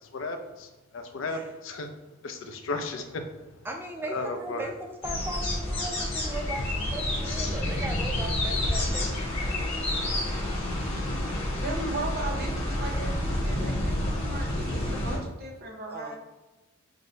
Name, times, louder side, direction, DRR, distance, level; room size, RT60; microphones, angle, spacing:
voice 1, 0.1-1.9 2.2-3.3 4.0-4.7, left 2 dB, 65° left, 6 dB, 0.4 m, -34 dB
voice 2, 3.6-9.7 15.9-16.2, right 1 dB, 10° right, 2 dB, 0.4 m, -38 dB
sound 1, 5.0-15.2, left 1 dB, 30° left, 1.0 m, -29 dB
voice 3, 11.5-16.2, right 2 dB, 45° right, 0 dB, 0.7 m, -36 dB
6.1 x 2.1 x 2.7 m, 1.1 s
head